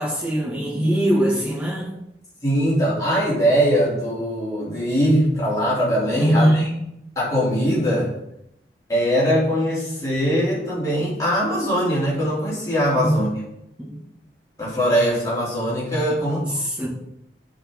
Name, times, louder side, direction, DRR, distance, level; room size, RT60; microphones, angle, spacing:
voice 1, 0.0-1.9 6.1-6.7 13.0-13.2 13.8-14.0 16.1-16.9, equal, 5° right, -6 dB, 1.9 m, -22 dB
voice 2, 2.4-6.5 7.2-8.1 8.9-13.3 14.6-16.4, equal, 20° left, -8 dB, 3.0 m, -21 dB
9.7 x 4.4 x 3.7 m, 0.82 s
head